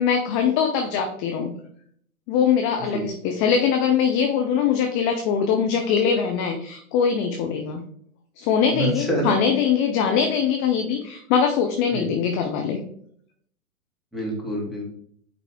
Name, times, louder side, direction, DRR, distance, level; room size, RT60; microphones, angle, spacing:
voice 1, 0.0-1.5 2.3-7.8 8.4-12.8, left 7 dB, 25° left, 4 dB, 0.4 m, -22 dB
voice 2, 8.7-9.4 11.9-12.1 14.1-14.8, right 1 dB, ahead, -4 dB, 2.1 m, -26 dB
8.3 x 3.3 x 3.7 m, 0.65 s
hypercardioid pair, 115°, 43 cm